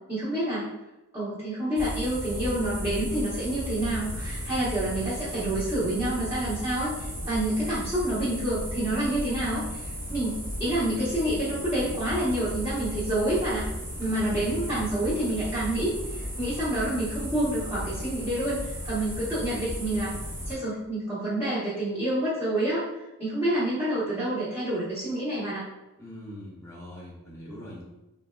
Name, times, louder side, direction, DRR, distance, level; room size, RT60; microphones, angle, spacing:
voice 1, 0.1-0.7 1.1-13.6 14.0-20.2 20.5-25.6, right 1 dB, 15° right, -13 dB, 0.9 m, -28 dB
sound 1, 1.8-20.5, equal, 60° right, 1.0 m, -35 dB
voice 2, 14.3-14.7 26.0-27.8, left 1 dB, 15° left, -5 dB, 0.8 m, -42 dB
4.0 x 2.2 x 2.2 m, 0.98 s
head